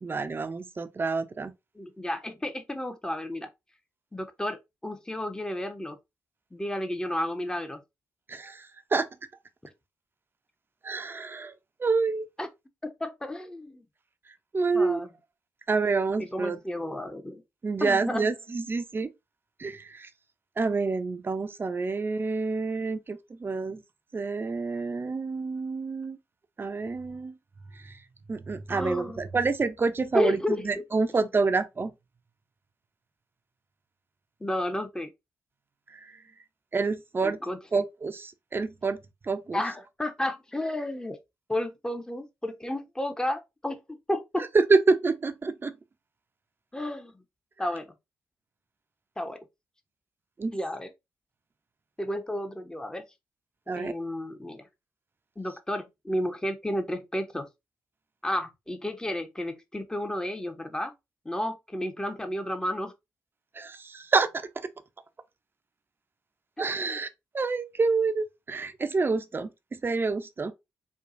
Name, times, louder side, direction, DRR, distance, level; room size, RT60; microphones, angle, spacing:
voice 1, 0.0-1.5 8.3-9.1 10.8-11.5 11.8-12.3 14.5-15.1 15.7-16.6 17.6-19.1 19.6-20.1 20.6-23.8 24.1-26.2 26.6-27.4 27.7-28.0 28.3-31.9 35.9-36.1 36.7-37.4 37.7-39.6 44.5-45.7 50.4-50.6 53.7-53.9 63.5-64.7 66.6-67.1 67.3-70.5, right 4 dB, 35° right, 0.6 m, -28 dB
voice 2, 1.7-3.5 4.1-6.0 6.5-7.8 12.4-12.5 12.8-13.9 14.7-15.1 16.2-17.4 17.8-18.3 28.7-29.2 30.1-30.8 34.4-35.1 37.2-37.8 39.5-41.2 41.5-44.5 46.7-47.1 47.6-47.9 49.2-49.4 50.5-50.9 52.0-53.0 53.7-54.7 55.4-57.5 58.2-60.9 61.2-62.9 66.6-67.0, left 1 dB, 10° left, 0.8 m, -32 dB
4.5 x 2.3 x 2.5 m
hypercardioid pair, 40°, 7 cm